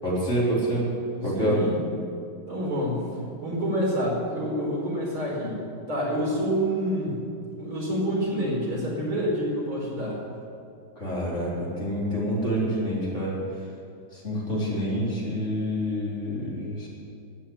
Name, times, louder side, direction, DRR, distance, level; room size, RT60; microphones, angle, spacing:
voice 1, 0.0-0.9 1.2-1.6 11.0-13.4 14.1-16.9, equal, 35° left, -6 dB, 4.4 m, -27 dB
voice 2, 1.1-1.7 2.5-3.0 3.4-5.6 5.9-7.2 7.6-10.2, equal, 80° right, -5 dB, 5.7 m, -27 dB
13.0 x 9.9 x 9.6 m, 2.4 s
omnidirectional pair, 2.2 m